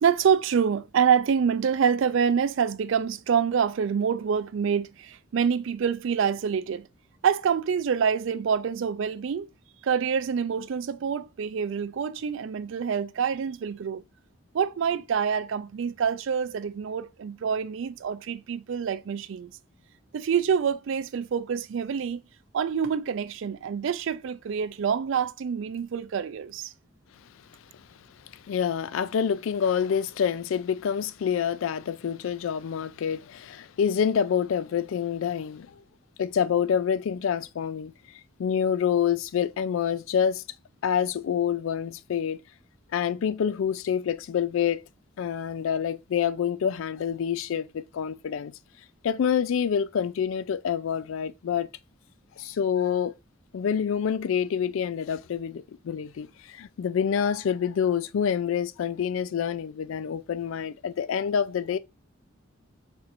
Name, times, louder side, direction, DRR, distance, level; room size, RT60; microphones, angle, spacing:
voice 1, 0.0-6.9 7.2-9.5 9.8-14.0 14.5-19.5 20.1-22.2 22.5-26.7, right 7 dB, 65° right, 0.3 m, -26 dB
voice 2, 28.3-35.7 36.2-37.9 38.4-40.4 40.8-42.4 42.9-44.8 45.2-48.5 49.0-51.7 52.4-53.1 53.5-61.8, left 8 dB, 70° left, 0.3 m, -27 dB
4.3 x 2.5 x 4.3 m
head